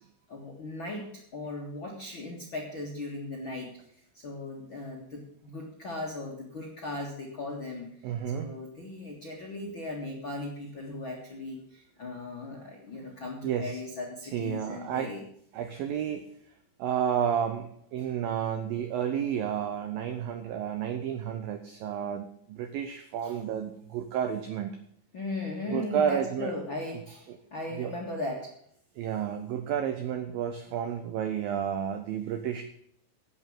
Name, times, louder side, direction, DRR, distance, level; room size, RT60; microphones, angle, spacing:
voice 1, 0.3-3.7 4.1-15.2 23.2-23.4 25.1-28.5, left 2 dB, 50° left, -2 dB, 1.6 m, -38 dB
voice 2, 8.0-8.5 13.4-13.8 14.3-15.1 15.5-16.3 16.8-24.7 25.7-26.5 27.3-27.4 27.8-27.9 29.0-32.6, right 9 dB, 85° right, 8 dB, 2.0 m, -31 dB
10.5 x 8.5 x 8.9 m, 0.68 s
omnidirectional pair, 5.4 m